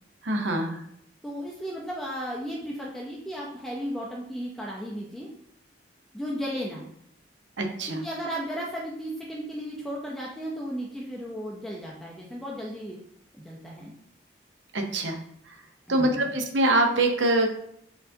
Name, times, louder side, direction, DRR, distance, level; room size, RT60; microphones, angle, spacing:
voice 1, 0.2-0.8 7.6-8.0 14.7-15.2 15.9-17.6, right 1 dB, 80° right, 4 dB, 0.7 m, -24 dB
voice 2, 1.2-5.3 6.1-6.9 7.9-13.0 13.3-13.9 15.9-16.4, equal, ahead, -4 dB, 0.5 m, -35 dB
4.5 x 3.8 x 2.7 m, 0.72 s
head